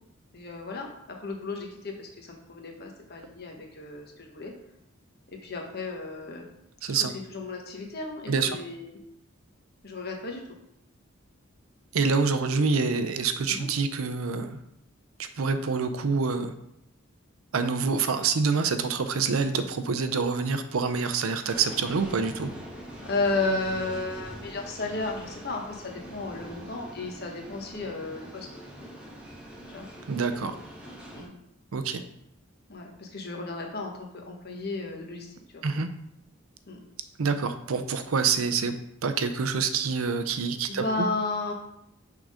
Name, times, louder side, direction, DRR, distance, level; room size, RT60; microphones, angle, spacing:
voice 1, 0.3-4.5 5.4-6.4 7.1-9.0 9.8-10.4 13.5-13.7 23.0-28.5 29.7-29.8 31.1-31.3 32.7-35.6 36.7-36.8 40.7-41.5, left 3 dB, 50° left, 2 dB, 1.2 m, -33 dB
voice 2, 6.8-7.1 8.3-8.6 11.9-14.6 15.2-16.5 17.5-22.5 30.1-30.5 31.7-32.0 35.6-35.9 37.2-38.7 39.0-40.8, right 5 dB, 80° right, 9 dB, 0.6 m, -26 dB
sound 1, 21.5-31.3, equal, 5° right, 1.1 m, -43 dB
6.2 x 3.8 x 4.9 m, 0.76 s
head